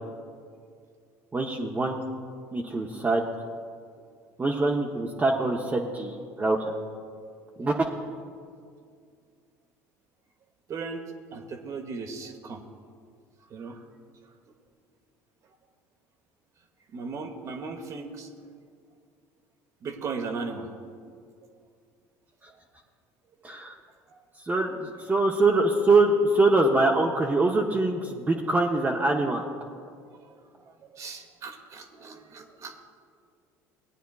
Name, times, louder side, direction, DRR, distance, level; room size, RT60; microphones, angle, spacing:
voice 1, 1.3-2.0 2.5-3.2 4.4-6.7 7.6-7.7 23.4-23.7 24.4-29.4, right 2 dB, 20° right, -2 dB, 0.9 m, -24 dB
voice 2, 10.7-11.0 11.3-12.6 13.5-13.8 16.9-18.3 19.8-20.7 30.7-32.8, right 4 dB, 45° right, 5 dB, 1.0 m, -37 dB
18.5 x 9.1 x 2.4 m, 2.2 s
hypercardioid pair, 75°, 8 cm